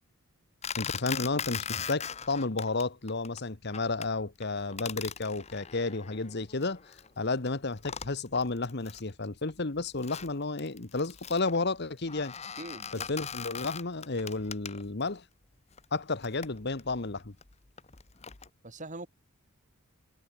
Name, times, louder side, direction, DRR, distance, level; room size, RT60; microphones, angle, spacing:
sound 1, 0.6-2.8 3.1-3.4 3.7-4.1 4.4-7.1 7.5-7.6 7.8-9.1 9.5-15.1 15.7-18.5, left 7 dB, 30° left, 1.1 m, -40 dB
voice 1, 0.8-6.8 7.2-12.3 13.1-15.2 15.9-17.3, left 3 dB, 50° left, 1.2 m, -32 dB
voice 2, 12.6-13.1 18.6-19.1, right 2 dB, 35° right, 2.5 m, -42 dB
head